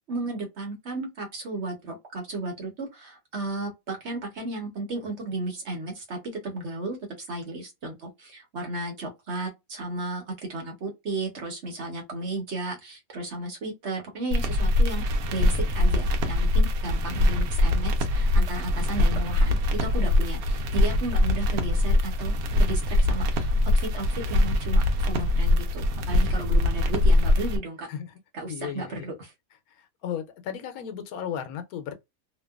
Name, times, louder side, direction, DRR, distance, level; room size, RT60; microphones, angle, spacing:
voice 1, 0.1-27.9 28.3-29.3, right 2 dB, 55° right, 1.1 m, -34 dB
sound 1, 14.3-27.6, left 1 dB, 85° right, 1.1 m, -23 dB
voice 2, 28.5-29.1 29.8-31.9, left 9 dB, 85° left, 1.1 m, -35 dB
2.9 x 2.2 x 2.3 m
omnidirectional pair, 1.5 m